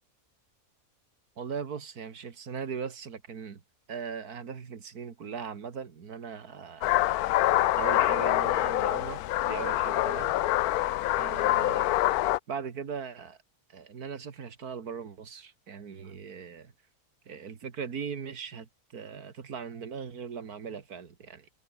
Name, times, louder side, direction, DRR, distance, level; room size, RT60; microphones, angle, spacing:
voice 1, 1.4-3.6 3.9-7.3 7.7-10.4 11.2-12.0 12.5-13.4 13.7-16.7 17.3-21.5, right 6 dB, 90° right, 2.3 m, -39 dB
sound 1, 6.8-12.4, left 15 dB, 90° left, 1.1 m, -26 dB
omnidirectional pair, 1.6 m